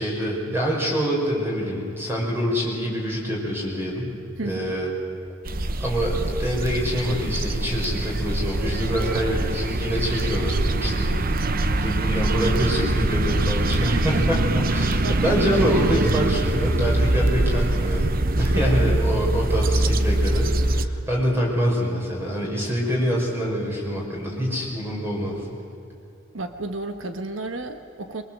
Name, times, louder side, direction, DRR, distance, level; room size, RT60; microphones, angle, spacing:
voice 1, 0.0-4.9 5.8-11.4 11.8-18.1 18.4-25.4, equal, 10° right, -3 dB, 5.5 m, -26 dB
voice 2, 4.4-4.7 13.8-14.3 15.0-15.2 15.5-15.9 18.5-19.0 26.3-28.2, right 2 dB, 75° right, 8 dB, 1.3 m, -32 dB
sound 1, 5.5-20.9, right 2 dB, 45° right, 0.9 m, -23 dB
23.0 x 22.5 x 7.6 m, 2.7 s
head